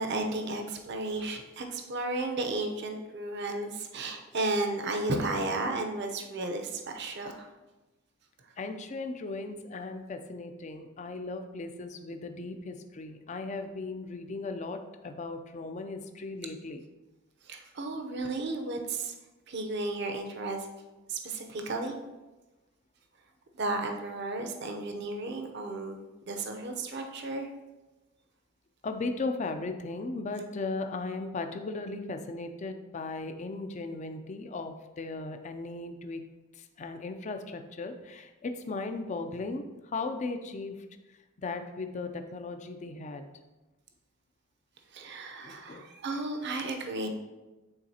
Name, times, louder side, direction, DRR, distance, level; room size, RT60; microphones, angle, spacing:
voice 1, 0.0-7.5 17.5-19.1 19.5-20.7 21.1-22.0 23.6-27.5 44.9-47.1, right 2 dB, 55° right, 4 dB, 0.7 m, -33 dB
voice 2, 8.6-16.8 28.8-36.2 36.5-40.8 41.1-43.3 45.4-45.8, left 3 dB, 35° left, 7 dB, 0.4 m, -37 dB
8.9 x 3.9 x 2.8 m, 1.1 s
head